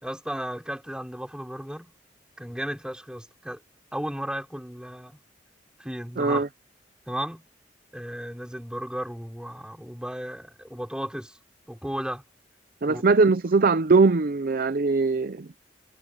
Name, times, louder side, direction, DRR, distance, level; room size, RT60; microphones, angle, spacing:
voice 1, 0.0-1.9 2.4-3.6 3.9-5.2 5.8-6.4 7.1-7.4 7.9-11.4 11.7-12.2 12.8-13.0, equal, 5° right, 4.8 m, -34 dB
voice 2, 6.2-6.5 12.8-15.5, right 3 dB, 55° right, 0.6 m, -21 dB
head